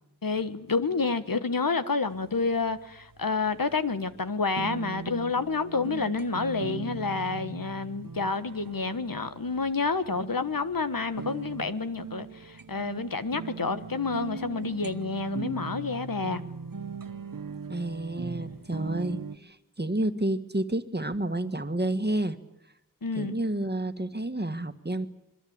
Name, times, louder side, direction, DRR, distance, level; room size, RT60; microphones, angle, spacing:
voice 1, 0.2-16.4 23.0-23.3, left 4 dB, 85° left, 1.4 m, -29 dB
sound 1, 2.1-19.4, right 5 dB, 80° right, 1.1 m, -40 dB
voice 2, 17.7-22.4 23.1-25.1, right 1 dB, 30° right, 1.8 m, -30 dB
26.5 x 22.0 x 8.8 m
wide cardioid pair, 50°, 33 cm